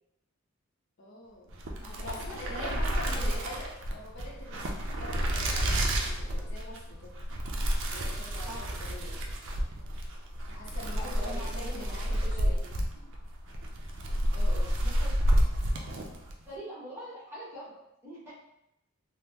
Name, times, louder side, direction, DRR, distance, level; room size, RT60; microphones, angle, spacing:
voice 1, 1.0-1.6 2.0-7.2 7.8-9.3 10.5-12.6 13.0-13.1 14.3-14.7, left 2 dB, 55° left, -3 dB, 0.6 m, -45 dB
sound 1, 1.5-16.4, equal, 55° right, 0.5 m, -30 dB
voice 2, 1.8-3.4 8.4-8.7 10.9-12.7 14.8-15.1 16.4-17.7 18.0-18.3, equal, 10° right, -8 dB, 1.2 m, -44 dB
3.5 x 2.0 x 2.8 m, 0.82 s
head